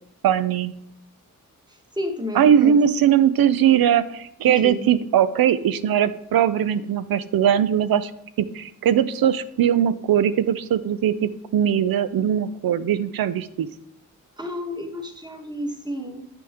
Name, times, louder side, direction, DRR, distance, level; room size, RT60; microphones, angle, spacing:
voice 1, 0.2-0.7 2.3-8.1 8.4-13.7, right 9 dB, 80° right, 14 dB, 0.5 m, -20 dB
voice 2, 2.0-2.8 4.4-4.8 14.4-16.3, left 1 dB, 10° right, 4 dB, 1.1 m, -31 dB
8.6 x 6.0 x 3.5 m, 0.75 s
wide cardioid pair, 110°, 35 cm